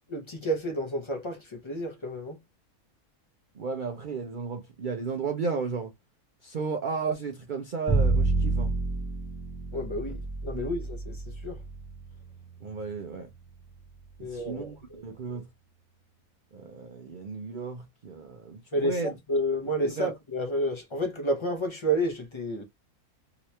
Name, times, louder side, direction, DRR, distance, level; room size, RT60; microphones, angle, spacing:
voice 1, 0.1-2.4 9.7-10.2 10.4-11.6 14.2-15.0 18.7-22.6, equal, 45° left, 0.3 m, -30 dB
voice 2, 3.5-5.9 6.4-8.7 10.5-10.7 12.6-13.3 14.2-15.5 16.5-19.1 20.0-20.1, right 5 dB, 75° right, 0.4 m, -34 dB
Bowed string instrument, 7.9-14.0, right 3 dB, 20° left, 1.0 m, -30 dB
3.0 x 2.9 x 3.1 m
omnidirectional pair, 1.6 m